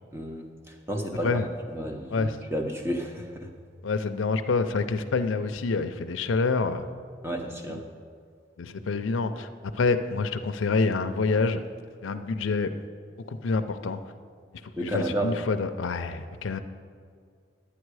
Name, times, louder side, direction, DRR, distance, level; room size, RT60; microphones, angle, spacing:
voice 1, 0.1-1.4 1.7-3.5 7.2-7.9 14.8-15.3, right 1 dB, 15° right, 3 dB, 0.8 m, -32 dB
voice 2, 3.8-6.8 7.7-7.8 8.6-11.6 12.0-12.8 13.3-14.0 14.6-16.6, left 4 dB, 90° left, 8 dB, 0.5 m, -27 dB
11.0 x 8.6 x 4.8 m, 2.1 s
head